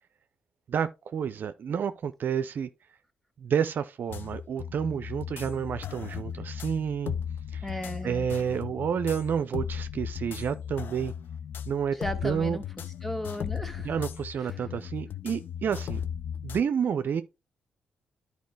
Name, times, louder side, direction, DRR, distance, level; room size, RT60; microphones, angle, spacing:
voice 1, 0.7-2.7 3.4-7.1 7.5-7.7 8.0-11.1 11.7-12.0 12.2-12.6 13.8-16.0 16.4-17.2, right 7 dB, 60° right, 0.5 m, -30 dB
sound 1, 4.1-16.6, left 8 dB, 65° left, 0.6 m, -36 dB
voice 2, 7.6-8.3 11.9-12.6 13.0-13.9 14.4-14.6, left 1 dB, 5° left, 1.9 m, -35 dB
10.5 x 4.7 x 3.3 m
supercardioid pair, 50°, 4 cm